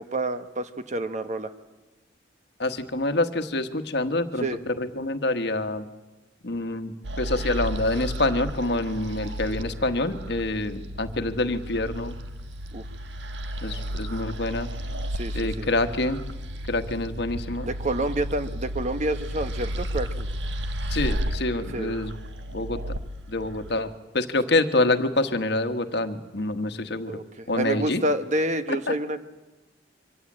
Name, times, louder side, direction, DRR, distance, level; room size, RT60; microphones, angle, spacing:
voice 1, 0.0-1.5 4.4-4.6 12.7-12.8 15.1-15.7 17.6-20.3 21.7-22.0 27.1-29.2, right 1 dB, 40° right, 10 dB, 1.1 m, -28 dB
voice 2, 2.6-5.8 6.4-12.1 13.6-14.7 15.3-16.2 16.7-17.7 20.9-22.1 22.5-22.8 23.3-23.9 24.1-27.2 27.5-28.0 28.7-28.8, left 2 dB, 65° left, 9 dB, 1.3 m, -26 dB
sound 1, 7.0-23.8, equal, 80° right, 1.4 m, -33 dB
24.5 x 15.5 x 8.7 m, 1.1 s
head